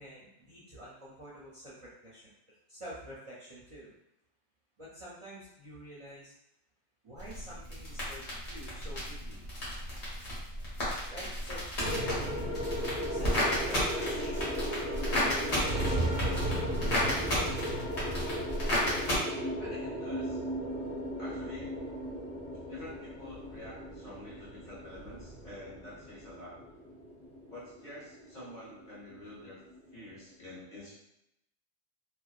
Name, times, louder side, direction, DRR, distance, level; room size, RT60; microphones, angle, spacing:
voice 1, 0.0-2.3 2.7-3.9 4.8-6.3 7.0-9.5 11.1-12.6 13.1-16.6, equal, 40° right, -8 dB, 0.5 m, -48 dB
sound 1, 7.2-19.2, left 1 dB, 80° left, 1.3 m, -33 dB
sound 2, 11.8-30.2, equal, 5° left, 0.6 m, -36 dB
voice 2, 19.6-20.4 21.2-21.8 22.7-26.6 27.5-29.6 29.9-30.9, left 1 dB, 45° left, -8 dB, 1.2 m, -47 dB
2.7 x 2.1 x 2.3 m, 0.84 s
omnidirectional pair, 1.1 m